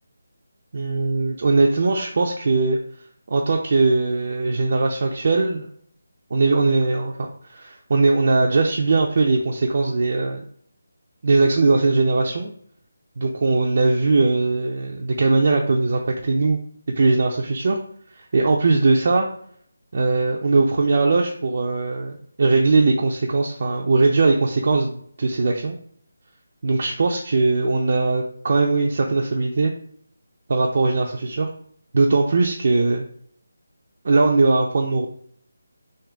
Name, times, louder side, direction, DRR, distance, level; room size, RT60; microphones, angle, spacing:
voice 1, 0.7-2.8 3.3-5.7 6.3-10.4 11.2-12.5 13.2-16.6 17.0-17.8 18.2-19.3 19.9-25.8 26.6-29.7 30.5-31.5 31.9-33.0 34.0-35.1, right 3 dB, 45° right, 0 dB, 0.4 m, -20 dB
3.7 x 2.5 x 3.3 m, 0.62 s
figure-of-eight pair, 170°, 0 cm